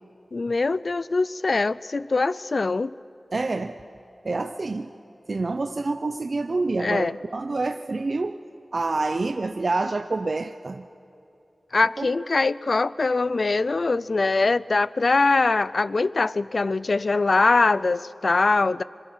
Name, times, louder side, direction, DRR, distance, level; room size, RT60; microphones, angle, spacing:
voice 1, 0.3-2.9 6.8-7.1 11.7-18.8, left 3 dB, 65° left, 0.5 m, -22 dB
voice 2, 3.3-3.8 4.2-4.9 5.3-8.4 8.7-10.9 12.0-12.1, right 3 dB, 60° right, 0.6 m, -27 dB
25.5 x 23.5 x 5.7 m
cardioid pair, 45°, 0 cm